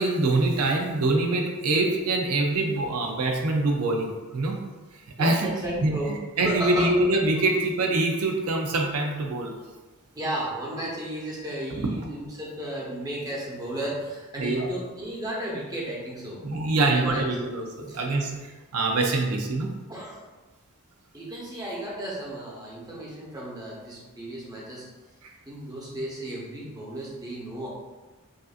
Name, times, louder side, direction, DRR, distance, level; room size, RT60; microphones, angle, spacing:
voice 1, 0.0-4.6 5.2-5.5 5.8-5.9 6.4-9.5 14.4-14.7 16.4-19.7, right 2 dB, 90° right, 1 dB, 0.6 m, -24 dB
voice 2, 5.2-6.1 6.4-6.9 10.1-16.4 16.8-17.2 17.9-18.0 19.9-20.2 21.1-24.9 25.5-27.7, right 1 dB, 20° right, -4 dB, 0.9 m, -34 dB
5.2 x 2.6 x 2.5 m, 1.2 s
head